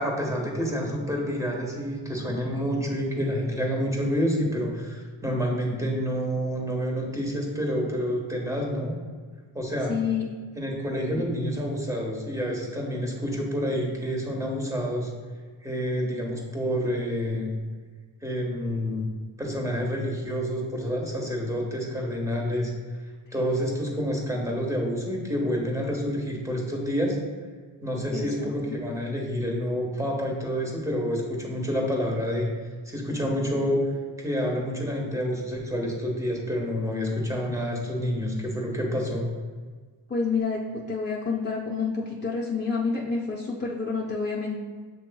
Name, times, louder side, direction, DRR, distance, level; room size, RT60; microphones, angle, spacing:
voice 1, 0.0-8.9 9.5-9.9 10.6-15.1 15.6-17.5 18.2-19.0 19.4-22.7 23.3-27.2 27.8-32.5 32.8-33.8 34.2-39.3, equal, 5° right, -1 dB, 1.2 m, -28 dB
voice 2, 9.9-10.2 28.1-28.5 40.1-40.6 40.9-44.6, left 5 dB, 20° left, -4 dB, 0.6 m, -28 dB
7.7 x 3.0 x 2.3 m, 1.5 s
cardioid pair, 70°, 48 cm